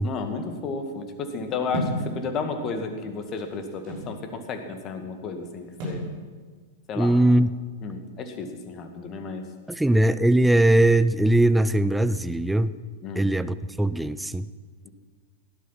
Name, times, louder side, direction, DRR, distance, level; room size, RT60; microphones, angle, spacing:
voice 1, 0.0-6.1 6.9-7.2 7.8-9.5 13.0-13.3 14.8-14.9, left 4 dB, 35° left, 6 dB, 2.1 m, -33 dB
sound 1, 1.7-2.1 3.0-4.2 5.8-6.1, right 1 dB, 50° right, 6.3 m, -30 dB
voice 2, 6.9-7.5 9.7-12.7 13.2-14.5, right 1 dB, 5° right, 14 dB, 0.6 m, -20 dB
17.0 x 11.5 x 6.0 m, 1.5 s
figure-of-eight pair, 95°, 0 cm